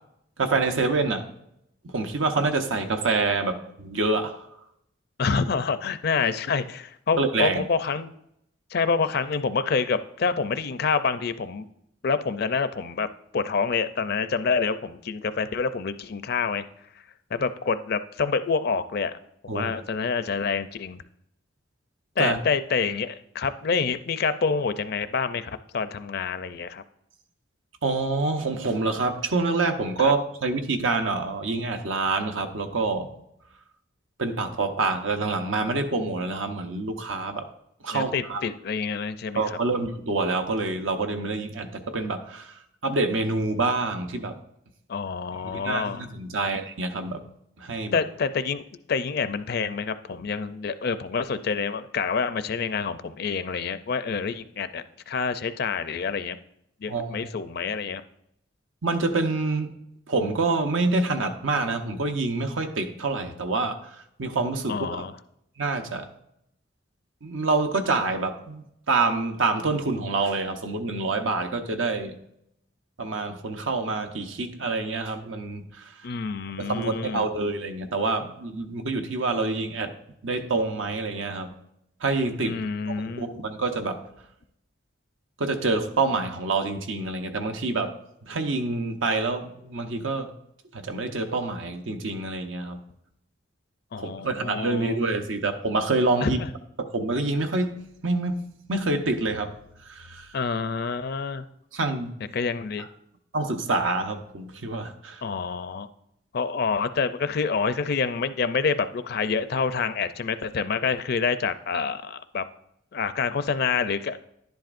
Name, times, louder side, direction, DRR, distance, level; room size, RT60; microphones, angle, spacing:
voice 1, 0.4-1.3 1.8-4.4 7.2-7.7 19.5-19.7 22.2-22.4 27.8-33.1 34.2-37.5 37.8-38.4 39.3-42.5 42.8-44.4 45.4-47.3 47.6-48.0 56.9-57.3 58.8-59.7 60.1-63.9 64.2-65.0 65.6-66.1 67.2-72.2 73.0-75.9 76.6-79.9 80.2-81.5 82.0-82.6 83.0-84.1 85.4-87.9 88.2-90.3 90.7-92.8 94.0-96.4 96.8-99.6 99.9-100.3 101.7-102.1 103.3-105.2, right 3 dB, 85° right, 5 dB, 0.9 m, -27 dB
voice 2, 5.2-8.1 8.7-11.7 12.0-13.1 13.3-16.6 17.3-19.1 19.4-21.0 22.2-26.8 30.0-30.1 37.9-39.6 44.9-46.0 47.9-48.6 48.9-56.4 56.8-58.0 64.7-65.1 76.0-77.3 82.4-83.3 93.9-95.0 96.2-96.4 100.3-101.4 102.3-102.9 105.2-105.9 106.3-112.4 112.9-114.2, left 5 dB, 55° left, 12 dB, 0.5 m, -27 dB
11.0 x 10.5 x 2.5 m, 0.77 s
head